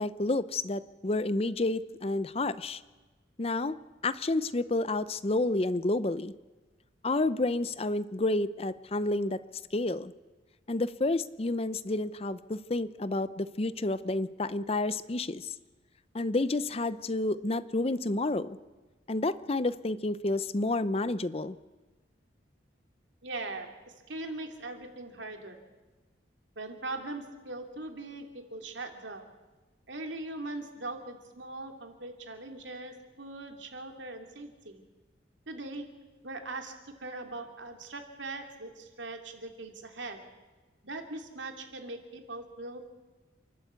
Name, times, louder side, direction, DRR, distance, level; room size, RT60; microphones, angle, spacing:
voice 1, 0.0-2.8 3.4-3.8 4.0-6.3 7.0-9.4 9.7-10.1 10.7-15.5 16.1-18.6 19.1-21.6, left 2 dB, 30° left, 15 dB, 0.6 m, -30 dB
voice 2, 23.2-25.6 26.6-29.3 29.9-34.8 35.5-35.9 36.2-40.3 40.8-42.9, right 2 dB, 80° right, 5 dB, 2.6 m, -41 dB
28.0 x 12.0 x 8.2 m, 1.2 s
head